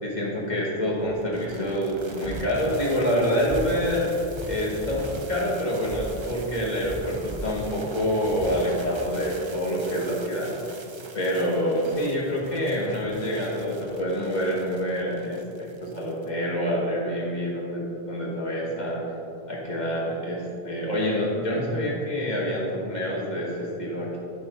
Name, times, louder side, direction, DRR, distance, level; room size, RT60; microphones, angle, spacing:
voice 1, 0.0-4.1 4.5-10.5 11.1-19.0 19.5-24.2, equal, 45° left, -5 dB, 1.7 m, -27 dB
sound 1, 1.0-16.3, right 2 dB, 35° right, 0.5 m, -40 dB
11.5 x 5.8 x 2.6 m, 2.6 s
omnidirectional pair, 1.1 m